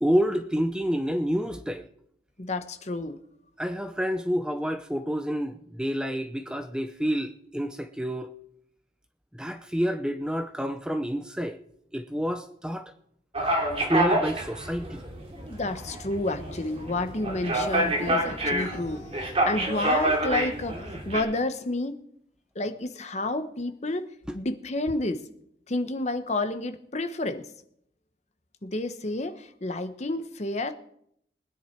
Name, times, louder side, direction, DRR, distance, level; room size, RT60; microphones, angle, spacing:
voice 1, 0.0-1.9 3.6-8.3 9.4-11.6 11.9-12.9 13.9-15.0 24.3-24.4, equal, 5° right, 8 dB, 0.6 m, -28 dB
voice 2, 2.4-3.2 15.5-22.0 22.5-24.1 24.3-25.3 25.7-27.5 28.6-30.7, left 2 dB, 40° left, 9 dB, 1.0 m, -30 dB
sound 1, 13.3-21.2, right 1 dB, 30° right, 3.0 m, -27 dB
21.0 x 10.0 x 4.5 m, 0.72 s
head